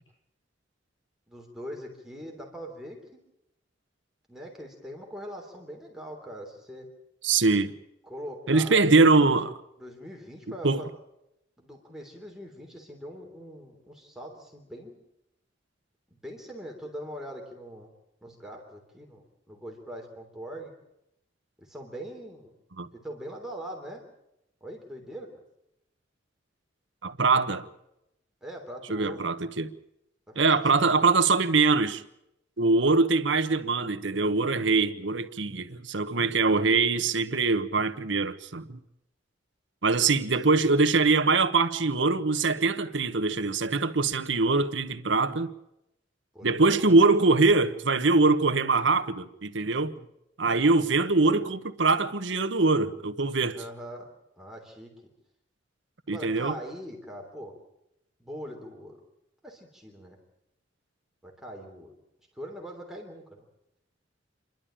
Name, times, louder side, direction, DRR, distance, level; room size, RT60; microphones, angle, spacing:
voice 1, 1.3-3.0 4.3-6.9 8.0-8.8 9.8-10.9 11.6-14.9 16.2-17.9 18.2-20.7 21.6-22.5 23.0-24.0 24.6-25.3 28.4-29.2 30.3-31.0 40.5-40.7 46.3-47.0 53.5-54.1 54.4-54.9 56.1-57.6 58.2-59.0 59.4-60.2 61.2-61.9 62.3-63.4, equal, 5° right, 3.2 m, -42 dB
voice 2, 7.2-7.7 8.5-9.5 10.6-10.8 22.8-22.9 27.0-27.7 28.9-29.7 30.3-32.0 32.6-38.8 39.8-45.5 46.4-50.0 50.4-53.6 56.1-56.6, right 3 dB, 70° right, 1.2 m, -23 dB
28.0 x 12.0 x 8.9 m
head